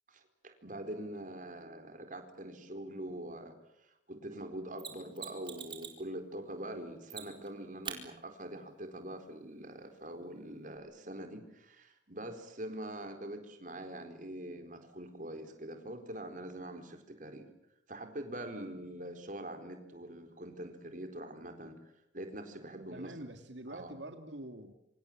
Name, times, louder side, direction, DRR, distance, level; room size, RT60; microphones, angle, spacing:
voice 1, 0.1-3.6 3.8-17.5 17.9-21.8 22.1-23.1 23.7-23.9, right 1 dB, 45° right, 6 dB, 4.3 m, -44 dB
Mechanisms, 4.8-6.0 7.1-7.5 7.8-8.0 10.8-10.9, right 7 dB, 25° right, 4.2 m, -43 dB
voice 2, 22.9-24.7, right 1 dB, 80° right, 6 dB, 2.3 m, -45 dB
27.5 x 26.0 x 7.5 m, 0.82 s
head